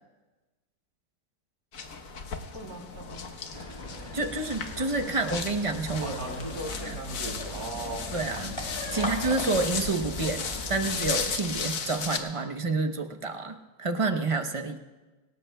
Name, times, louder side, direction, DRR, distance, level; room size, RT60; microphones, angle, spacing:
sound 1, 1.7-12.2, left 5 dB, 60° left, 1.5 m, -36 dB
voice 1, 2.5-3.3 6.0-8.0 8.9-9.2, right 2 dB, 65° right, 0 dB, 3.6 m, -38 dB
sound 2, 3.5-11.0, left 1 dB, 20° left, 1.2 m, -39 dB
voice 2, 4.1-6.2 6.8-7.0 8.1-8.6 8.9-14.8, right 3 dB, 30° right, 6 dB, 0.6 m, -29 dB
26.0 x 19.0 x 2.3 m, 1.2 s
omnidirectional pair, 1.7 m